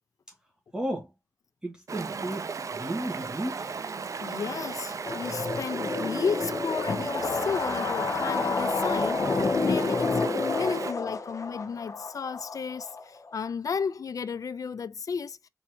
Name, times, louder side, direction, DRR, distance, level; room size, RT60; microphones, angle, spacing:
voice 1, 0.7-1.1 1.6-3.7, right 1 dB, 15° right, 2.1 m, -34 dB
Stream, 1.9-10.9, right 5 dB, 70° right, 0.5 m, -35 dB
voice 2, 4.2-15.4, left 6 dB, 85° left, 0.4 m, -33 dB
sound 1, 5.0-13.3, left 4 dB, 65° left, 0.9 m, -29 dB
4.4 x 4.2 x 2.8 m
wide cardioid pair, 95°, 6 cm